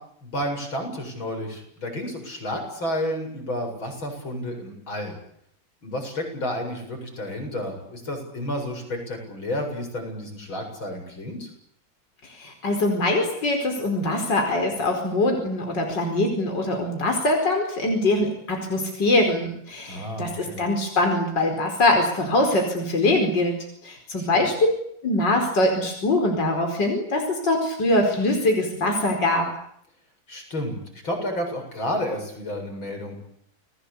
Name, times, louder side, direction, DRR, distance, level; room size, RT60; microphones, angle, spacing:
voice 1, 0.2-5.2 5.8-11.5 19.9-20.6 24.2-24.5 30.3-33.2, left 1 dB, 80° left, 4 dB, 8.5 m, -31 dB
voice 2, 12.3-23.6 23.8-24.7 25.0-29.5, left 2 dB, 60° left, 3 dB, 5.4 m, -23 dB
29.5 x 20.5 x 8.5 m, 0.71 s
omnidirectional pair, 2.1 m